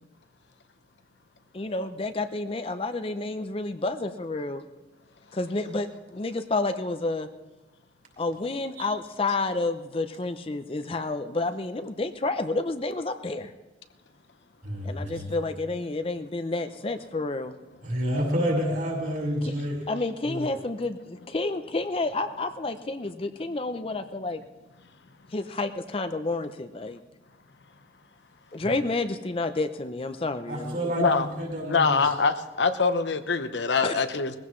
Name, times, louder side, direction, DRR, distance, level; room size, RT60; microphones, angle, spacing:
voice 1, 1.5-4.6 5.3-7.3 8.2-13.5 14.8-17.5 19.9-24.4 25.3-27.0 28.5-30.9 33.8-34.1, left 2 dB, 30° left, 9 dB, 0.5 m, -30 dB
voice 2, 14.6-15.3 17.8-19.8 20.2-20.5 28.6-28.8 30.5-32.1, equal, 55° right, -2 dB, 5.5 m, -29 dB
voice 3, 31.7-34.3, left 4 dB, 80° left, 10 dB, 0.8 m, -24 dB
20.0 x 15.5 x 3.2 m, 1.1 s
head